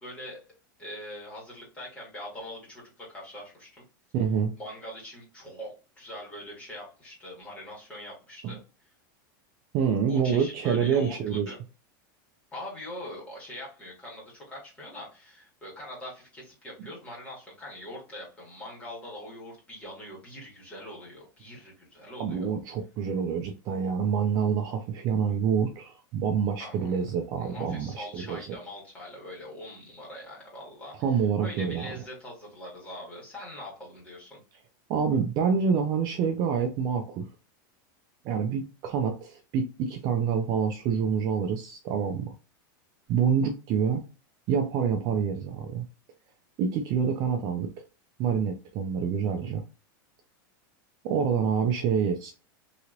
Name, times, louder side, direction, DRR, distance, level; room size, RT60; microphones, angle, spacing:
voice 1, 0.0-0.4 0.8-3.8 4.6-8.6 10.1-11.6 12.5-22.5 26.6-26.9 27.4-34.4, left 1 dB, 10° left, -4 dB, 1.6 m, -42 dB
voice 2, 4.1-4.5 8.4-8.5 9.7-11.5 22.2-28.4 31.0-31.9 34.9-37.3 38.2-42.3 43.1-44.0 44.5-45.9 46.6-47.7 48.2-49.6 51.0-52.3, right 7 dB, 35° right, 4 dB, 0.4 m, -27 dB
3.0 x 2.9 x 2.5 m, 0.32 s
supercardioid pair, 160°, 11 cm